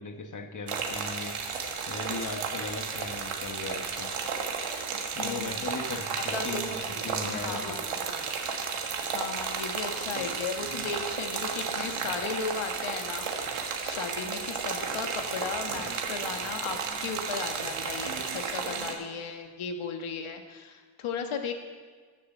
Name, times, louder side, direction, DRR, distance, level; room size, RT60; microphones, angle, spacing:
voice 1, 0.0-4.1 5.1-6.8 7.0-7.8, left 3 dB, 35° left, 6 dB, 1.4 m, -38 dB
sound 1, 0.7-18.9, right 5 dB, 75° right, 1.7 m, -33 dB
voice 2, 5.2-5.6 5.9-6.9 7.3-8.0 9.1-21.5, left 5 dB, 70° left, 6 dB, 1.5 m, -36 dB
14.5 x 6.6 x 6.7 m, 1.5 s
cardioid pair, 75°, 50 cm